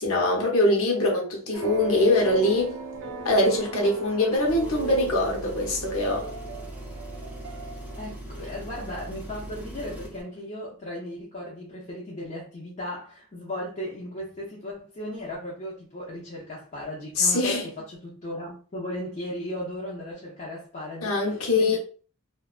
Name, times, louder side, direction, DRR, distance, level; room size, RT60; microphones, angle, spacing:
voice 1, 0.0-2.8 3.2-6.3 17.2-17.6 21.0-21.8, left 2 dB, 65° left, 0.9 m, -23 dB
sound 1, 1.5-8.2, right 4 dB, 60° right, 0.5 m, -37 dB
Engine, 4.4-10.2, right 1 dB, 5° right, 0.5 m, -40 dB
voice 2, 8.0-21.8, left 1 dB, 35° left, 0.6 m, -36 dB
2.6 x 2.2 x 2.4 m
head